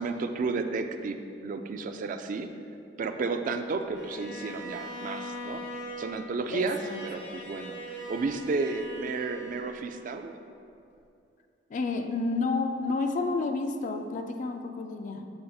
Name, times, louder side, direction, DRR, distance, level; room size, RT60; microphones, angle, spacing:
voice 1, 0.0-2.5 3.0-5.6 6.0-10.3, right 3 dB, 45° right, 7 dB, 0.3 m, -32 dB
Bowed string instrument, 3.9-10.2, right 1 dB, 90° left, 0.9 m, -41 dB
voice 2, 6.5-7.0 11.7-15.3, left 3 dB, 45° left, 6 dB, 0.4 m, -30 dB
7.0 x 6.4 x 2.3 m, 2.5 s
head